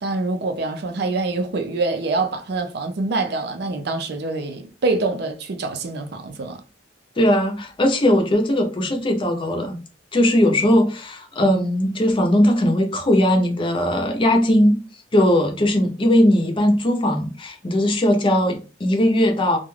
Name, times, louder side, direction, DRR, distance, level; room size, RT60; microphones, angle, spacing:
voice 1, 0.0-6.6, right 3 dB, 65° right, 0.5 m, -25 dB
voice 2, 7.2-9.8 10.1-14.8 15.1-19.6, left 1 dB, 30° left, 0.6 m, -19 dB
2.4 x 2.2 x 3.2 m
head